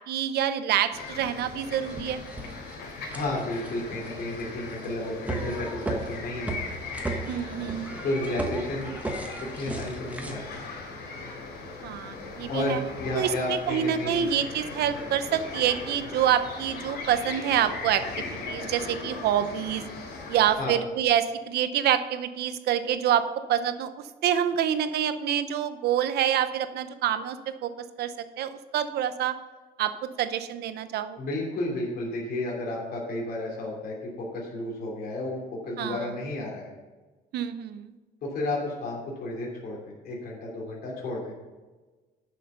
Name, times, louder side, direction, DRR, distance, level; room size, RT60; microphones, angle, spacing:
voice 1, 0.1-2.2 7.3-7.9 11.8-12.8 13.1-19.9 20.3-23.2 23.5-23.9 24.2-27.4 27.6-27.7 28.0-29.3 29.8-29.9 30.2-31.2 35.8-36.0 37.3-37.9, right 10 dB, 70° right, 11 dB, 0.7 m, -27 dB
sound 1, 0.9-20.6, left 3 dB, 85° left, 3.1 m, -39 dB
sound 2, 1.1-1.2 1.7-10.3, right 2 dB, 10° right, 1.2 m, -36 dB
voice 2, 3.1-6.6 8.0-9.0 9.6-10.7 12.5-14.3 20.6-20.8 31.2-36.7 38.2-41.3, left 2 dB, 60° left, -3 dB, 2.8 m, -32 dB
10.5 x 6.6 x 5.5 m, 1.3 s
cardioid pair, 145°, 17 cm